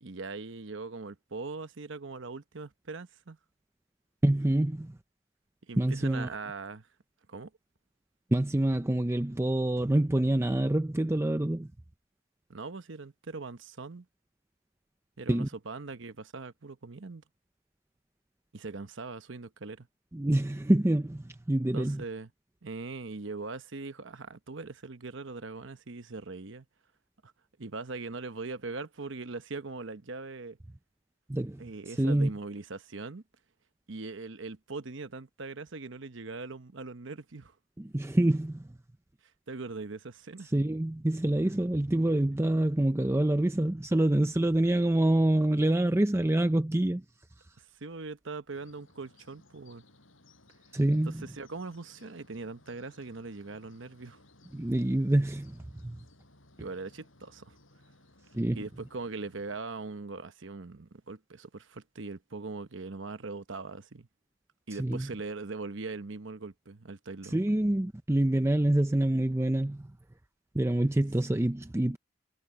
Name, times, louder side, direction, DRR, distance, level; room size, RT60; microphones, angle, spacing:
voice 1, 0.0-3.4 5.7-6.9 7.3-7.5 12.5-14.1 15.2-17.2 18.5-19.9 21.7-22.3 22.6-26.7 27.2-27.3 27.6-30.6 31.6-33.2 33.9-37.5 39.5-40.5 41.4-41.5 47.6-49.8 51.0-54.2 56.6-57.5 58.5-64.1 64.7-67.4, right 3 dB, 65° right, 1.0 m, -41 dB
voice 2, 4.2-5.0 5.8-6.3 8.3-11.7 15.3-15.5 20.1-22.0 31.3-32.3 37.8-38.7 40.5-47.0 50.7-51.2 54.5-56.0 58.3-58.6 64.8-65.1 67.2-69.9 70.5-72.0, right 1 dB, 15° right, 0.5 m, -26 dB
sound 1, 48.5-59.6, left 2 dB, 70° left, 6.3 m, -61 dB
head